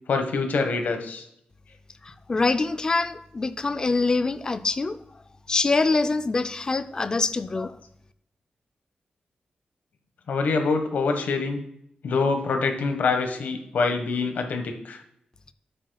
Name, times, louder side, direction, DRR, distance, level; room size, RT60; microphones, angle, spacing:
voice 1, 0.1-1.2 10.3-11.6 12.0-15.0, left 4 dB, 70° left, 5 dB, 1.3 m, -25 dB
voice 2, 2.0-5.0 5.5-7.8, left 3 dB, 25° left, 12 dB, 0.4 m, -24 dB
9.2 x 8.7 x 2.3 m, 0.74 s
wide cardioid pair, 175°, 3 cm